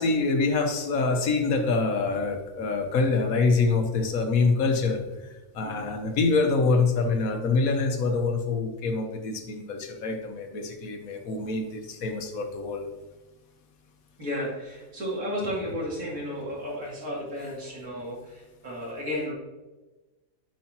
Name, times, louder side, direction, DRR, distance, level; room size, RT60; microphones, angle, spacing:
voice 1, 0.0-5.0 5.5-12.9, left 3 dB, 85° left, 5 dB, 1.4 m, -25 dB
voice 2, 14.2-19.3, equal, 80° right, -4 dB, 3.1 m, -33 dB
11.0 x 5.6 x 2.9 m, 1.1 s
omnidirectional pair, 1.4 m